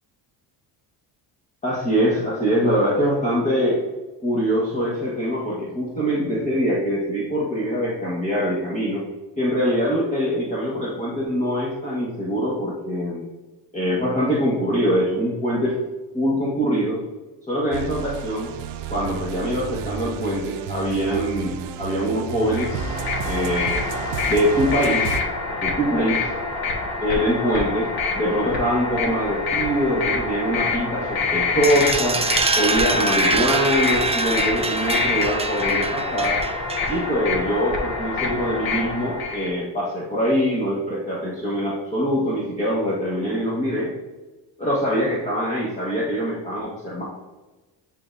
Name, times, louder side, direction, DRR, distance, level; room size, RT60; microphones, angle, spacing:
voice 1, 1.6-3.8 4.2-9.0 9.4-13.2 13.7-15.8 16.1-17.0 17.5-18.5 18.9-22.9 23.2-23.8 24.2-25.2 25.6-26.3 27.0-27.9 28.1-32.2 32.5-36.4 36.9-43.9 44.6-47.0, equal, 15° left, -7 dB, 1.4 m, -23 dB
sound 1, 17.7-25.2, right 7 dB, 65° right, 0.6 m, -32 dB
sound 2, 22.4-39.5, left 4 dB, 55° left, 1.4 m, -26 dB
sound 3, 31.6-37.2, right 3 dB, 15° right, 0.4 m, -25 dB
9.5 x 3.8 x 2.7 m, 1.1 s
cardioid pair, 120°, 44 cm